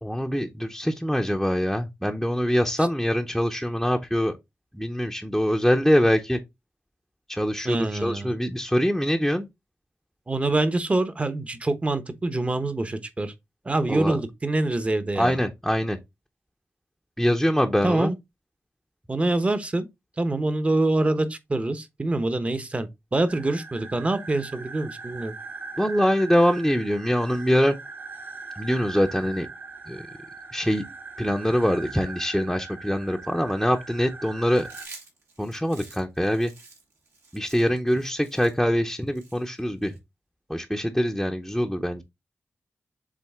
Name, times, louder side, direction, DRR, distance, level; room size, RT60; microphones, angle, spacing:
voice 1, 0.0-4.3 4.7-6.4 7.3-9.5 13.9-14.2 15.2-16.0 17.2-18.1 25.8-27.7 28.6-29.5 29.9-30.0 30.5-30.8 31.2-34.7 35.4-36.5 37.3-40.0 40.5-42.0, equal, ahead, 0.7 m, -24 dB
voice 2, 7.6-8.3 10.3-13.3 13.6-15.4 17.8-18.2 19.1-19.9 20.2-25.3, right 2 dB, 30° right, 1.0 m, -25 dB
sound 1, 23.3-34.9, right 4 dB, 50° right, 2.5 m, -40 dB
Chewing mastication, 34.5-40.0, right 3 dB, 80° right, 2.7 m, -48 dB
7.5 x 3.6 x 3.6 m
wide cardioid pair, 90°, 5 cm